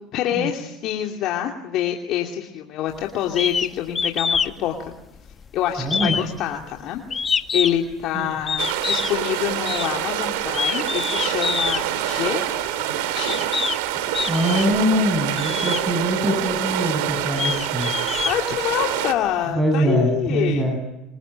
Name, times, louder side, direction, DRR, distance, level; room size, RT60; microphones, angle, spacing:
voice 1, 0.1-4.9 5.5-13.4 18.2-20.6, left 11 dB, 60° left, 2 dB, 2.8 m, -26 dB
sound 1, 3.4-3.7 4.0-4.5 4.9-5.5 5.9-7.9 8.5-9.2 9.7-9.9 10.5-11.8 12.7-12.8 13.3-13.8 14.1-14.8 15.4-15.8 16.5-16.6 17.1-18.9, left 5 dB, 30° left, 1.6 m, -25 dB
voice 2, 5.8-6.2 8.1-8.3 14.3-17.9 19.5-20.8, equal, 15° right, 3 dB, 7.6 m, -23 dB
sound 2, 8.6-19.1, right 12 dB, 80° right, 2.6 m, -26 dB
27.0 x 23.5 x 9.1 m, 0.94 s
supercardioid pair, 90°, 0 cm